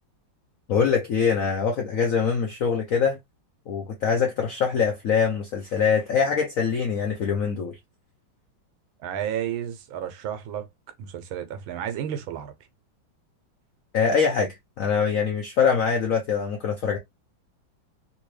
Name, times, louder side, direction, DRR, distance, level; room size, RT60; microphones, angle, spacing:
voice 1, 0.7-3.2 3.7-7.8 13.9-17.0, left 6 dB, 75° left, 0.7 m, -23 dB
voice 2, 9.0-10.7 11.0-12.5, right 9 dB, 85° right, 1.5 m, -32 dB
3.4 x 2.7 x 3.0 m
omnidirectional pair, 2.2 m